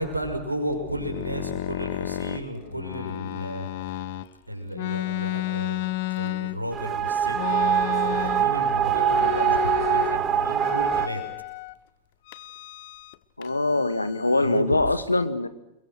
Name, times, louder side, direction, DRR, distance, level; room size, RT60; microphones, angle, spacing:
voice 1, 0.0-3.7 4.5-11.2 14.4-15.1, equal, 85° right, 5 dB, 5.7 m, -33 dB
sound 1, 0.7-4.3 4.7-6.9 7.3-8.6 8.9-10.2 10.6-11.7 12.3-13.2 13.4-14.6, left 15 dB, 50° left, 1.1 m, -32 dB
sound 2, 6.7-11.1, right 9 dB, 30° right, 1.4 m, -23 dB
voice 2, 13.4-15.5, left 2 dB, 80° left, 12 dB, 1.7 m, -23 dB
29.5 x 22.0 x 6.4 m, 0.89 s
figure-of-eight pair, 90°, 0 cm